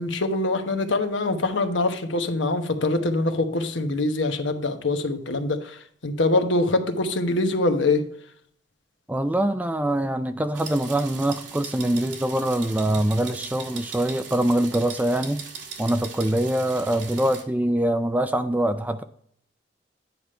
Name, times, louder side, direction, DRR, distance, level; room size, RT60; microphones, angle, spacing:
voice 1, 0.0-8.0, left 2 dB, 85° left, 7 dB, 1.1 m, -24 dB
voice 2, 9.1-15.5 15.8-19.0, right 1 dB, 10° right, 9 dB, 0.3 m, -24 dB
sound 1, 10.5-17.4, right 6 dB, 85° right, 1.8 m, -39 dB
9.5 x 5.0 x 4.3 m, 0.64 s
head